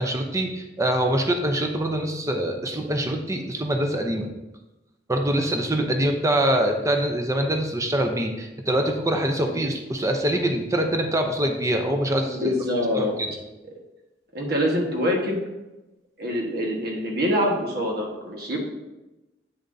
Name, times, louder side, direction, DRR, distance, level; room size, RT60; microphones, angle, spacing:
voice 1, 0.0-4.3 5.1-12.6 12.9-13.3, right 1 dB, 15° right, 4 dB, 0.7 m, -24 dB
voice 2, 12.2-13.1 14.3-15.4 16.2-18.6, equal, 60° right, 0 dB, 1.4 m, -25 dB
8.3 x 7.1 x 2.7 m, 1.0 s
head